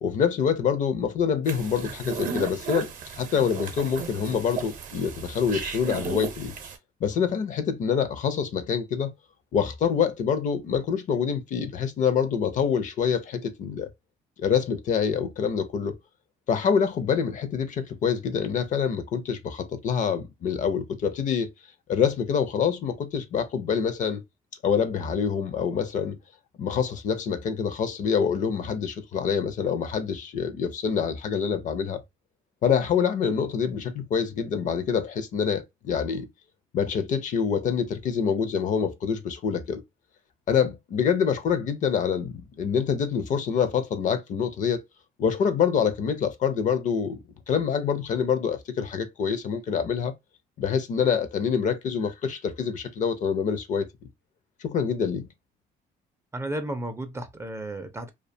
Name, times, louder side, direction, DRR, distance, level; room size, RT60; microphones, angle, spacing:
voice 1, 0.0-6.5 7.0-9.1 9.5-13.9 14.4-16.0 16.5-21.5 21.9-24.2 24.6-26.2 26.6-32.0 32.6-36.3 36.7-39.8 40.5-44.8 45.2-50.1 50.6-53.9 54.6-55.3, left 7 dB, 50° left, 0.5 m, -26 dB
sound 1, 1.5-6.8, right 6 dB, 50° right, 0.6 m, -35 dB
voice 2, 56.3-58.1, right 1 dB, 15° right, 0.4 m, -33 dB
2.4 x 2.2 x 2.5 m
cardioid pair, 110°, 17 cm